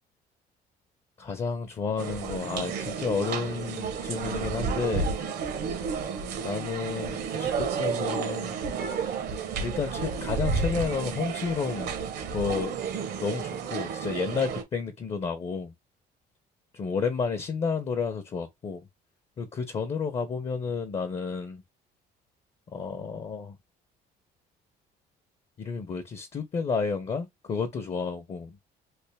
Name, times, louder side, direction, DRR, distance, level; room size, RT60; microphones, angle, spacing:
voice 1, 1.2-5.2 6.4-8.6 9.6-11.9 12.3-12.7 13.2-15.7 16.7-18.8 19.4-21.6 22.7-23.6 25.6-28.6, left 5 dB, 35° left, 0.7 m, -31 dB
sound 1, 2.0-14.6, right 5 dB, 75° right, 1.1 m, -31 dB
3.3 x 2.5 x 3.3 m
cardioid pair, 110°, 17 cm